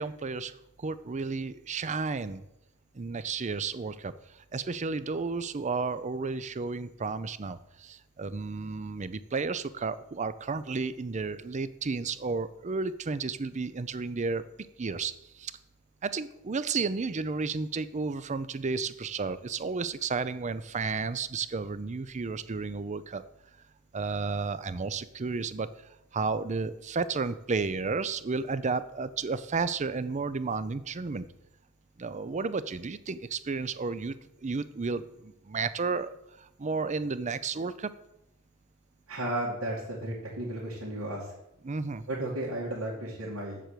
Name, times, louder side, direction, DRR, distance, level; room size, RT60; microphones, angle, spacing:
voice 1, 0.0-2.5 2.9-4.1 4.5-14.4 14.8-15.5 16.0-23.2 23.9-25.7 26.1-31.3 32.0-37.9 41.6-42.0, right 4 dB, 35° right, 14 dB, 0.5 m, -32 dB
voice 2, 39.1-41.3 42.1-43.6, right 1 dB, 75° right, -6 dB, 2.5 m, -34 dB
7.7 x 7.5 x 6.7 m, 0.87 s
head